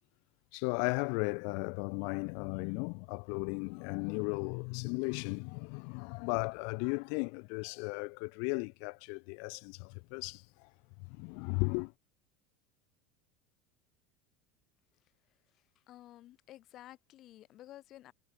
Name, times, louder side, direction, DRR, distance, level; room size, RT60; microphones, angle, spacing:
voice 1, 0.5-10.7 11.1-11.9, left 40 dB or more, 65° left, 0.3 m, -36 dB
voice 2, 15.9-18.1, left 14 dB, 50° left, 1.3 m, -53 dB
hypercardioid pair, 90°, 0 cm